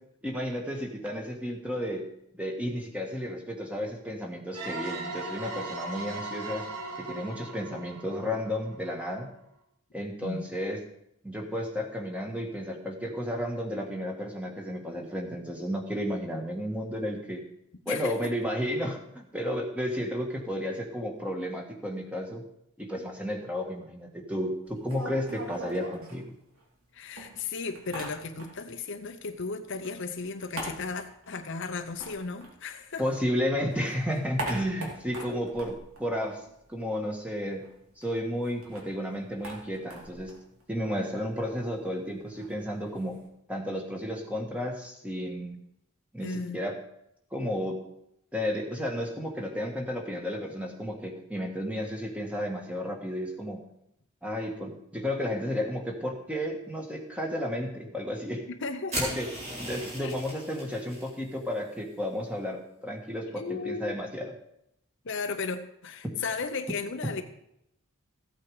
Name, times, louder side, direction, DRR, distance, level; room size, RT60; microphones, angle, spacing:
voice 1, 0.2-2.1 2.3-6.6 7.0-9.3 9.9-10.8 11.2-17.4 17.8-22.4 22.8-26.2 33.0-36.4 36.7-37.7 38.0-40.3 40.7-43.2 43.5-45.6 46.1-46.7 47.3-47.8 48.3-53.6 54.2-58.4 58.9-59.3 59.6-64.3, equal, 5° right, 1 dB, 1.6 m, -32 dB
sound 1, 4.5-9.1, right 2 dB, 85° right, 1.9 m, -38 dB
voice 2, 17.9-18.3 26.9-33.0 35.3-35.5 46.2-46.6 58.5-59.4 60.0-60.1 63.4-64.0 65.0-67.2, left 4 dB, 55° left, 7 dB, 0.7 m, -35 dB
sound 2, 24.7-26.8 27.2-28.8 29.1-33.2 33.5-36.8 37.1-37.2 37.5-43.3, right 1 dB, 70° right, 2.8 m, -42 dB
sound 3, 58.9-61.1, equal, 30° right, 3.8 m, -36 dB
14.5 x 8.6 x 4.9 m, 0.79 s
head